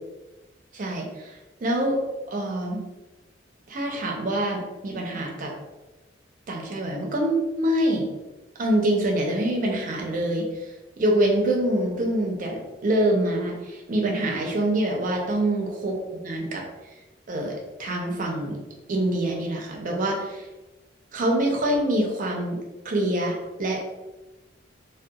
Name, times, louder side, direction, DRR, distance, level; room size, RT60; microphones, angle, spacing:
voice 1, 0.7-1.3 1.6-2.0 2.3-2.8 3.7-5.5 6.5-8.1 8.6-10.4 11.0-15.9 16.2-16.6 17.3-17.5 17.8-18.6 18.9-20.4 21.1-22.6 22.8-23.8, right 1 dB, 45° right, 0 dB, 0.5 m, -25 dB
2.7 x 2.2 x 2.2 m, 1.1 s
head